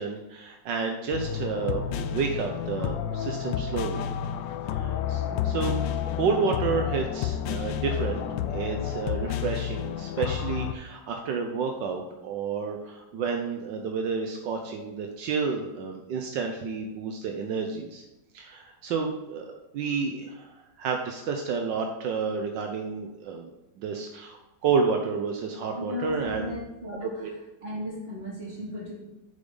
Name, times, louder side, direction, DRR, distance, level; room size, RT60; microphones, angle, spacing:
voice 1, 0.0-4.0 4.8-5.8 6.1-8.2 8.5-18.0 18.3-20.5 20.8-23.5 23.8-26.6 27.0-27.3, right 5 dB, 80° right, 3 dB, 1.5 m, -30 dB
simple vapor-y loop, 1.1-10.7, left 9 dB, 85° left, 1.3 m, -30 dB
voice 2, 25.7-27.2 27.6-28.9, left 1 dB, 35° right, -4 dB, 2.9 m, -36 dB
9.0 x 7.1 x 3.9 m, 1.0 s
omnidirectional pair, 1.9 m